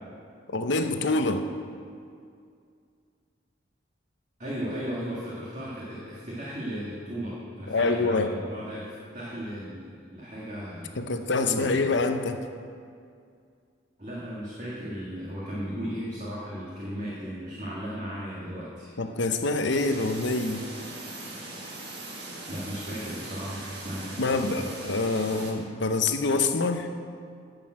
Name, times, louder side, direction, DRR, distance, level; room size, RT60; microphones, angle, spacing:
voice 1, 0.5-1.5 7.7-8.4 11.0-12.4 19.0-20.6 24.2-26.9, left 3 dB, 65° left, 7 dB, 0.7 m, -26 dB
voice 2, 4.4-11.0 11.4-11.9 14.0-18.9 22.5-24.7, equal, 40° right, -7 dB, 1.9 m, -36 dB
sound 1, 19.8-25.5, right 2 dB, 55° right, 1.7 m, -40 dB
11.0 x 6.7 x 7.5 m, 2.3 s
head